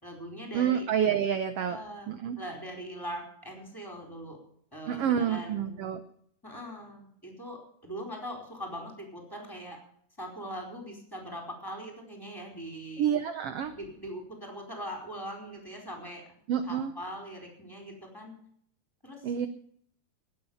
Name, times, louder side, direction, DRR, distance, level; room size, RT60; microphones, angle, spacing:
voice 1, 0.0-0.9 1.7-4.4 4.7-5.9 6.4-9.8 10.2-13.1 13.7-16.4 16.6-18.3 19.0-19.5, equal, 5° left, 1 dB, 4.2 m, -41 dB
voice 2, 0.5-1.8 2.1-2.4 4.9-6.0 13.0-13.8 16.5-16.9 19.2-19.5, right 8 dB, 75° right, 10 dB, 1.4 m, -28 dB
19.5 x 8.4 x 7.1 m, 0.65 s
omnidirectional pair, 3.7 m